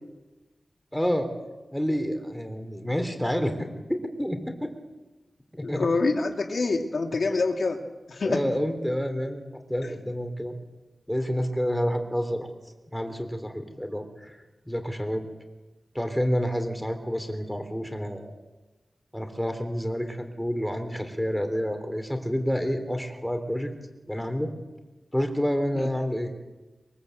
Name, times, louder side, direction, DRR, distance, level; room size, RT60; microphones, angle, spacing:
voice 1, 0.9-1.3 1.7-4.7 5.5-5.9 8.2-10.5 11.1-12.5 12.9-14.4 14.7-15.3 15.9-18.3 19.1-23.7 24.1-24.5 25.1-26.3, equal, 5° left, 6 dB, 3.6 m, -29 dB
voice 2, 5.6-7.8 8.1-8.4 25.7-25.9, left 3 dB, 65° left, 3 dB, 2.8 m, -26 dB
23.5 x 23.0 x 8.0 m, 1.1 s
wide cardioid pair, 115°, 0 cm